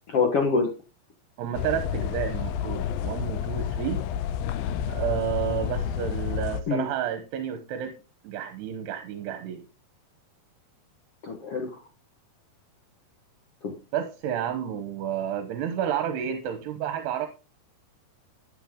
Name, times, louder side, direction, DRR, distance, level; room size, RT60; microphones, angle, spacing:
voice 1, 0.1-0.7 6.7-6.9 11.2-11.8 13.6-13.7, left 4 dB, 55° left, 3 dB, 1.6 m, -25 dB
voice 2, 1.4-4.0 4.8-7.9 8.2-9.6 13.9-17.3, right 9 dB, 80° right, 7 dB, 3.2 m, -30 dB
sound 1, 1.5-6.6, left 9 dB, 80° left, 2.2 m, -30 dB
13.0 x 8.9 x 3.8 m, 0.31 s
omnidirectional pair, 4.8 m